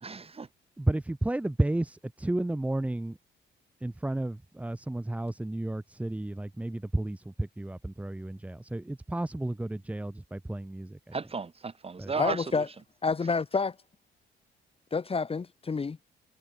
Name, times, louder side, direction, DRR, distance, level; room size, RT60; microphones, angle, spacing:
voice 1, 0.0-0.5 11.1-12.6, right 4 dB, 30° right, 2.7 m, -35 dB
voice 2, 0.8-3.2 3.8-11.1 12.0-12.1, right 1 dB, 5° right, 0.6 m, -32 dB
voice 3, 12.2-12.7 13.0-13.7 14.9-16.0, left 4 dB, 30° left, 1.2 m, -28 dB
cardioid pair, 90°, 20 cm